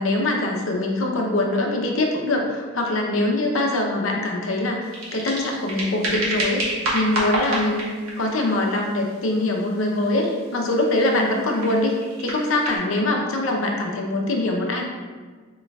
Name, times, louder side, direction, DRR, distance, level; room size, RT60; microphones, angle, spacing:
voice 1, 0.0-14.8, left 2 dB, 70° left, 0 dB, 0.7 m, -23 dB
sound 1, 4.8-12.8, right 1 dB, 85° right, 1.2 m, -30 dB
6.9 x 3.1 x 2.3 m, 1.5 s
head